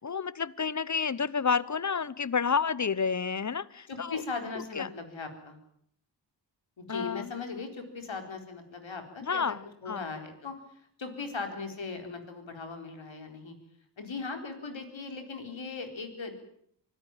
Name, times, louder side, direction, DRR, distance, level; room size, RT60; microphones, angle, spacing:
voice 1, 0.0-4.2 4.8-4.9 6.9-7.3 9.2-10.0, left 6 dB, 40° left, 20 dB, 1.0 m, -30 dB
voice 2, 3.9-5.6 6.8-10.5 11.0-13.6 14.0-16.3, left 4 dB, 90° left, 6 dB, 4.3 m, -38 dB
25.0 x 17.0 x 9.1 m, 0.68 s
wide cardioid pair, 70°, 45 cm